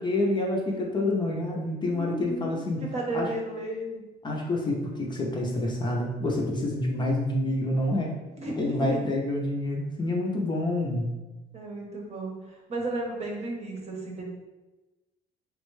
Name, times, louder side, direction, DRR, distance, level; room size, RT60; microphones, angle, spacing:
voice 1, 0.0-2.8 3.1-3.3 4.2-8.2 8.6-11.1, left 1 dB, 25° left, -1 dB, 0.5 m, -27 dB
voice 2, 1.8-3.9 8.4-9.0 11.5-14.2, right 2 dB, 40° right, -1 dB, 0.8 m, -34 dB
3.4 x 2.2 x 3.1 m, 1.1 s
cardioid pair, 110°, 17 cm